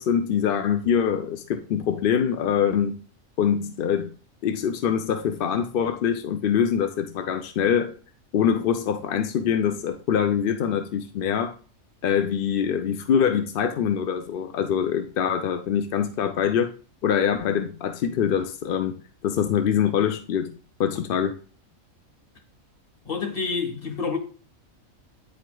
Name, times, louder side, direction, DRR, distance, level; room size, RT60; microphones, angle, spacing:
voice 1, 0.0-3.0 3.4-4.1 4.4-7.9 8.3-11.6 12.0-16.7 17.0-18.9 19.2-20.5 20.8-21.3, left 8 dB, 65° left, 0.5 m, -24 dB
voice 2, 23.0-24.2, left 5 dB, 45° left, 1.3 m, -28 dB
9.4 x 4.6 x 2.2 m
omnidirectional pair, 1.4 m